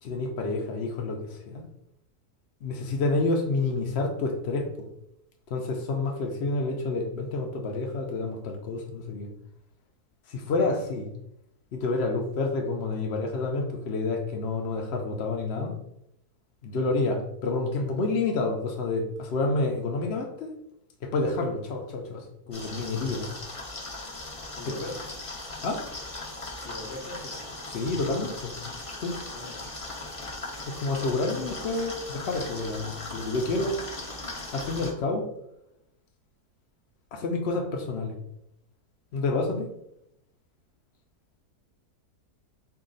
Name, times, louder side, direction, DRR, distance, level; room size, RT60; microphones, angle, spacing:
voice 1, 0.0-1.6 2.6-4.7 5.5-9.3 10.3-11.1 11.7-15.8 16.6-20.5 21.0-23.3 25.6-25.8 27.7-28.5 29.0-29.2 30.7-33.8 34.5-35.3 37.1-38.1 39.1-39.7, left 3 dB, 70° left, 2 dB, 0.6 m, -29 dB
sound 1, 22.5-34.9, left 2 dB, 25° left, 0.7 m, -38 dB
voice 2, 24.5-25.1 26.6-27.4 29.3-29.6, left 2 dB, 50° left, 1 dB, 1.0 m, -40 dB
4.6 x 2.4 x 3.8 m, 0.79 s
omnidirectional pair, 1.7 m